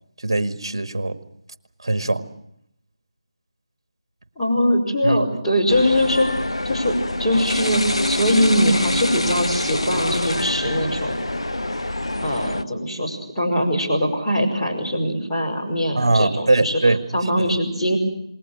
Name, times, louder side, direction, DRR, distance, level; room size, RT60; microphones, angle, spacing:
voice 1, 0.2-1.2 1.8-2.2 5.0-5.2 16.0-17.6, right 2 dB, 55° right, 10 dB, 1.7 m, -21 dB
voice 2, 4.4-6.3 6.6-11.2 12.2-16.8 17.1-18.0, equal, 10° left, -7 dB, 5.5 m, -22 dB
sound 1, 5.7-12.6, left 1 dB, 75° left, 1.2 m, -25 dB
28.0 x 20.5 x 6.4 m, 0.76 s
figure-of-eight pair, 155°, 3 cm